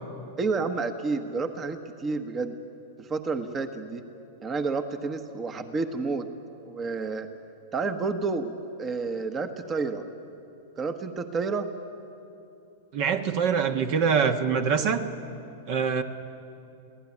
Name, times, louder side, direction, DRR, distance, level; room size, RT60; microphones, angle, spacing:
voice 1, 0.4-2.6 3.0-4.0 4.4-6.3 6.6-7.3 7.7-8.5 8.8-10.0 10.8-11.7, right 4 dB, 25° right, 8 dB, 1.3 m, -30 dB
voice 2, 12.9-15.0 15.7-16.0, right 6 dB, 50° right, 7 dB, 1.4 m, -24 dB
23.5 x 17.0 x 9.9 m, 2.7 s
hypercardioid pair, 100°, 0 cm